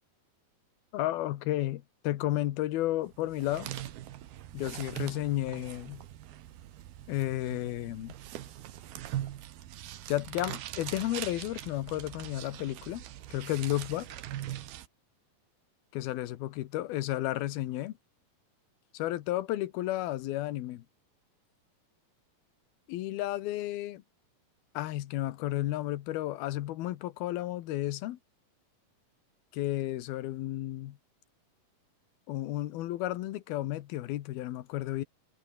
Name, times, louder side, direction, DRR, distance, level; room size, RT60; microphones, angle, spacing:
voice 1, 0.9-3.7 4.5-6.0 7.1-8.1 10.1-13.0 13.3-14.1 15.9-17.9 18.9-20.8 22.9-24.0 24.7-28.2 29.5-31.0 32.3-35.0, left 15 dB, 85° left, 3.0 m, -32 dB
sound 1, 3.1-14.9, right 12 dB, 90° right, 3.5 m, -42 dB
omnidirectional pair, 4.3 m